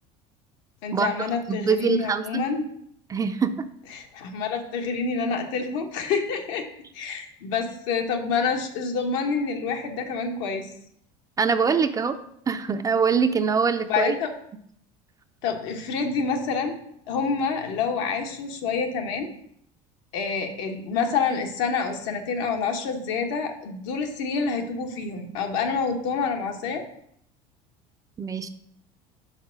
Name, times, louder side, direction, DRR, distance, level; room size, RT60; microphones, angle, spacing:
voice 1, 0.8-2.6 3.9-6.7 6.9-10.7 13.9-14.3 15.4-16.8 17.1-19.3 20.1-26.8, left 5 dB, 75° left, 4 dB, 1.2 m, -27 dB
voice 2, 1.5-2.2 3.1-3.5 11.4-12.2 12.5-14.2 28.2-28.5, right 6 dB, 20° right, 8 dB, 0.4 m, -23 dB
5.7 x 4.3 x 5.9 m, 0.70 s
supercardioid pair, 120°, 16 cm